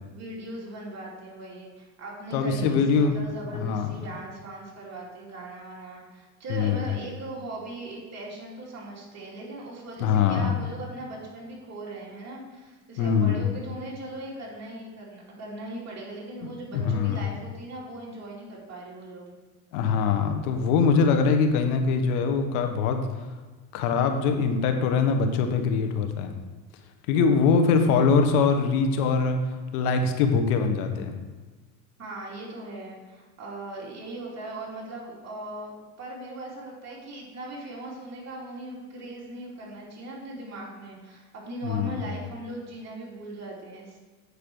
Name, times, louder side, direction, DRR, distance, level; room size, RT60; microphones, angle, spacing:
voice 1, 0.1-19.3 32.0-35.7 36.0-44.0, right 2 dB, 35° right, -4 dB, 3.1 m, -39 dB
voice 2, 2.3-3.2 3.5-3.9 6.5-6.9 10.0-10.5 13.0-13.5 16.7-17.2 19.7-23.0 23.7-26.3 27.1-29.4 29.7-31.1 41.6-42.0, left 5 dB, 85° left, 6 dB, 1.3 m, -23 dB
8.6 x 5.0 x 6.2 m, 1.3 s
supercardioid pair, 110°, 44 cm